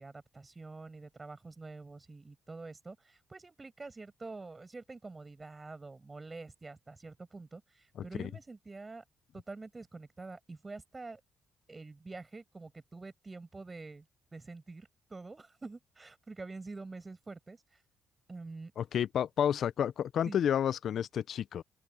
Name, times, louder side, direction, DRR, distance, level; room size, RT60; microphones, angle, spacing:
voice 1, 0.0-9.0 9.3-11.2 11.7-14.1 14.3-17.6 18.3-18.7 20.2-20.4, right 3 dB, 25° right, 5.7 m, -47 dB
voice 2, 18.8-21.6, left 9 dB, 65° left, 0.4 m, -30 dB
open air
cardioid pair, 90°, 0 cm